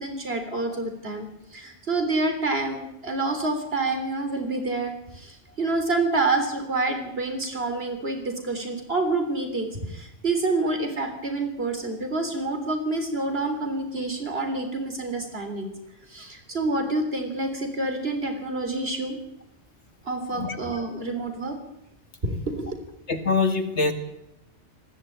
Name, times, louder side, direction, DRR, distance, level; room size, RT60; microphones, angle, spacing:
voice 1, 0.0-15.7 16.1-19.2 20.1-21.6 22.2-22.8, right 2 dB, 60° right, 6 dB, 3.8 m, -28 dB
voice 2, 23.1-23.9, left 4 dB, 75° left, 6 dB, 2.3 m, -23 dB
19.5 x 16.0 x 9.1 m, 0.83 s
omnidirectional pair, 1.2 m